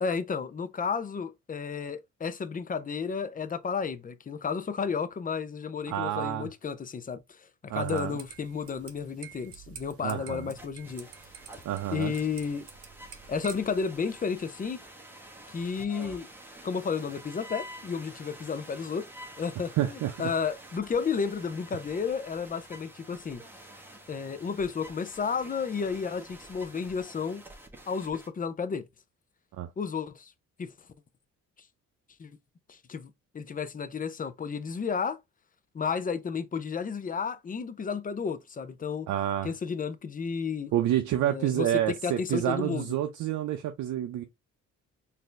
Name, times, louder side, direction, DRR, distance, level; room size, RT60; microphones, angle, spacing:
voice 1, 0.0-11.1 11.9-12.6 13.3-14.8 15.5-16.3 16.6-19.1 19.4-23.4 24.1-27.4 27.9-28.9 29.8-30.3 30.6-30.7 32.2-32.3 32.7-35.2 35.7-39.1 39.4-40.7 41.2-43.0, left 6 dB, 30° left, 0.6 m, -32 dB
voice 2, 5.9-6.5 7.7-8.1 10.0-10.5 11.6-12.1 19.8-20.3 29.6-29.7 39.1-39.5 40.7-44.2, right 12 dB, 75° right, 0.6 m, -28 dB
sound 1, 7.8-13.8, right 7 dB, 50° right, 0.8 m, -49 dB
sound 2, 10.5-28.3, right 1 dB, 5° right, 1.2 m, -48 dB
4.1 x 2.7 x 3.2 m
cardioid pair, 90°, 30 cm